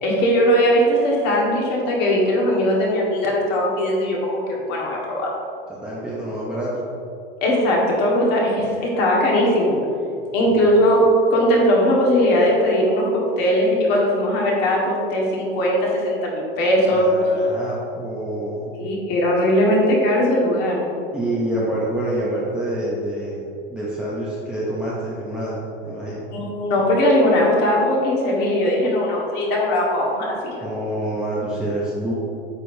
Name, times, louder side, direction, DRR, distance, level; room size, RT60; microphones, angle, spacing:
voice 1, 0.0-5.3 7.4-9.8 10.3-17.1 18.7-20.9 26.3-30.5, equal, 35° left, -2 dB, 1.6 m, -19 dB
voice 2, 5.7-6.8 10.5-10.7 16.9-18.7 21.1-23.4 23.7-26.3 30.6-32.1, right 1 dB, 5° right, -8 dB, 0.7 m, -27 dB
8.9 x 6.7 x 2.7 m, 2.6 s
supercardioid pair, 165°, 30 cm